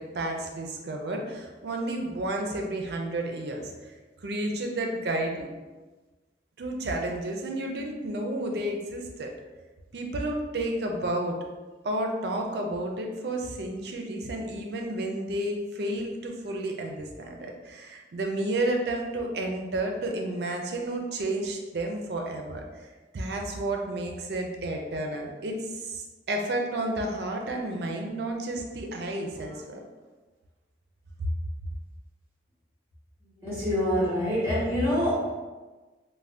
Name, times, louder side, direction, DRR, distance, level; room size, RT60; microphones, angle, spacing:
voice 1, 0.0-3.9 4.2-5.5 6.6-9.3 9.9-11.4 11.8-22.9 23.1-29.8 31.2-31.3, right 1 dB, 65° right, 2 dB, 0.4 m, -31 dB
voice 2, 33.4-35.3, equal, 15° right, -10 dB, 1.1 m, -25 dB
2.5 x 2.1 x 3.3 m, 1.2 s
head